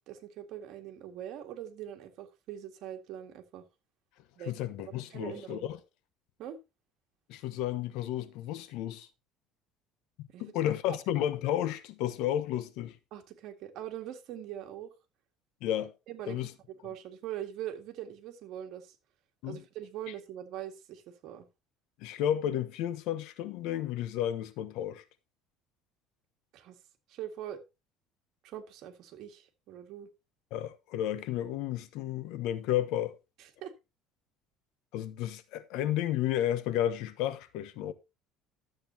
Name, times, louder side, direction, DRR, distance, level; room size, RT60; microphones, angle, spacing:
voice 1, 0.1-3.6 4.4-4.5 4.8-5.7 6.4-6.6 10.3-10.4 10.9-11.0 13.1-14.9 16.1-16.4 16.7-19.0 19.4-21.5 26.5-26.8 27.1-27.6 28.4-30.1 33.4-33.7, right 11 dB, 60° right, 1.9 m, -42 dB
voice 2, 4.5-5.8 7.3-9.1 10.4-13.0 15.6-15.9 16.3-16.5 19.4-19.6 22.0-25.0 30.5-33.2 34.9-37.9, left 11 dB, 70° left, 1.1 m, -32 dB
12.5 x 7.8 x 2.8 m
cardioid pair, 135°, 0 cm